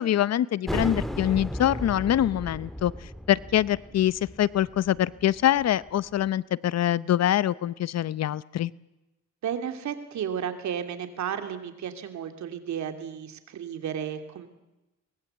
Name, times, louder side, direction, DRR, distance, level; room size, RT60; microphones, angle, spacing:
voice 1, 0.0-2.9 3.3-8.7, left 12 dB, 60° left, 19 dB, 0.7 m, -24 dB
sound 1, 0.7-6.0, equal, ahead, 1.7 m, -35 dB
voice 2, 9.4-14.5, right 8 dB, 70° right, 7 dB, 3.0 m, -33 dB
23.0 x 21.0 x 8.3 m, 1.0 s
cardioid pair, 90°, 30 cm